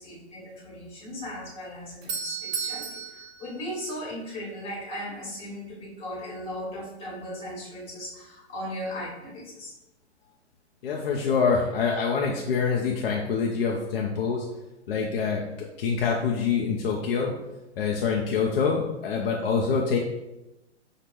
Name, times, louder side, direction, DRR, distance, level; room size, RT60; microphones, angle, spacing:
voice 1, 0.0-9.7 11.2-11.5, equal, 15° left, -5 dB, 1.5 m, -37 dB
Doorbell, 1.7-4.5, right 6 dB, 60° right, 1.0 m, -35 dB
voice 2, 10.8-14.4 14.9-17.3 17.8-20.0, left 5 dB, 55° left, -1 dB, 0.7 m, -25 dB
6.2 x 2.4 x 3.2 m, 0.95 s
figure-of-eight pair, 115°, 34 cm